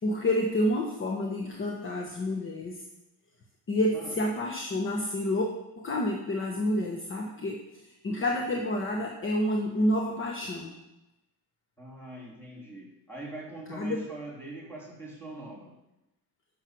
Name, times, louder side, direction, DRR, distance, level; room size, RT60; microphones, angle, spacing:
voice 1, 0.0-2.8 3.7-5.5 5.8-10.7 13.7-14.0, left 1 dB, 30° left, 1 dB, 1.2 m, -29 dB
voice 2, 11.8-15.7, right 2 dB, 5° left, -4 dB, 3.2 m, -42 dB
10.5 x 6.8 x 6.2 m, 0.92 s
cardioid pair, 145°, 38 cm